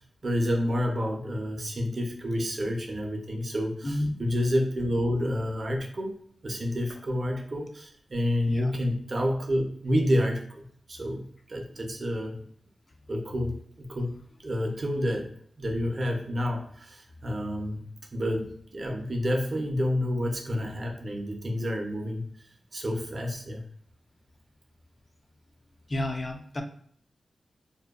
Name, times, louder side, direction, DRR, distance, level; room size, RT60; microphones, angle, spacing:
voice 1, 0.2-6.1 6.4-12.4 13.1-17.8 18.1-22.3 22.7-23.6, equal, 40° right, 1 dB, 0.5 m, -29 dB
voice 2, 25.9-26.6, left 1 dB, 30° left, 5 dB, 0.3 m, -30 dB
2.6 x 2.1 x 2.3 m, 0.62 s
wide cardioid pair, 100°, 0 cm